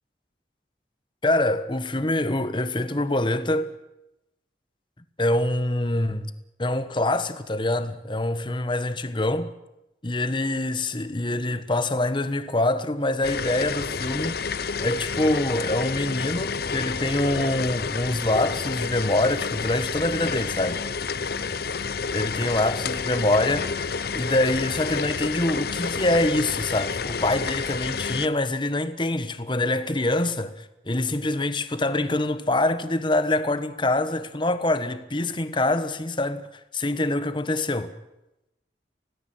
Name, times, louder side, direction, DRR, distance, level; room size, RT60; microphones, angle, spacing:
voice 1, 1.2-3.7 5.2-6.3 6.6-9.5 10.0-20.8 22.1-23.7 24.1-36.5 36.7-37.9, left 1 dB, 25° left, 1.3 m, -25 dB
sound 1, 13.2-28.3, left 5 dB, 60° left, 0.8 m, -30 dB
25.5 x 18.0 x 7.9 m
head